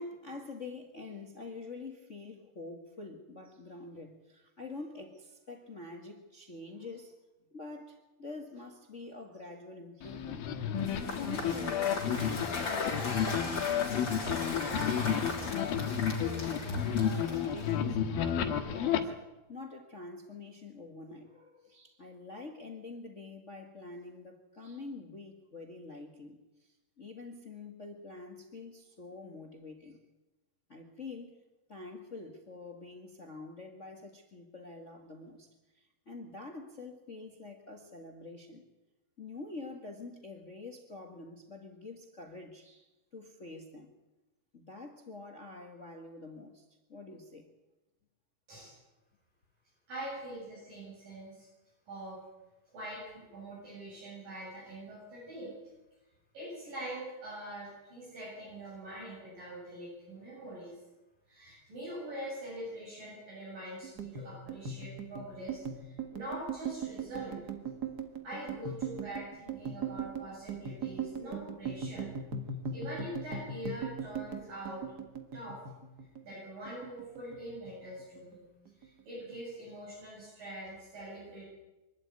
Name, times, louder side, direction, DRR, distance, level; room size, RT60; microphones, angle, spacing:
voice 1, 0.0-7.2 7.5-10.5 11.0-19.1 19.5-30.0 30.7-31.4 31.7-38.6 39.2-43.9 44.5-47.5, left 3 dB, 55° left, 4 dB, 0.8 m, -46 dB
sound 1, 10.0-19.0, left 8 dB, 75° left, 3.2 m, -31 dB
Cheering / Applause / Crowd, 10.8-17.9, left 2 dB, 30° left, 4.0 m, -38 dB
voice 2, 49.9-51.5 51.9-52.2 52.7-55.5 56.3-60.8 61.3-67.4 68.2-72.1 72.7-74.8 75.3-75.6 76.2-78.5 78.8-81.4, right 1 dB, 65° right, -6 dB, 9.8 m, -43 dB
sound 2, 63.8-76.4 76.7-77.7 78.0-78.4 78.7-79.3, right 5 dB, 45° right, 1.3 m, -39 dB
24.5 x 12.5 x 9.6 m, 1.1 s
omnidirectional pair, 4.2 m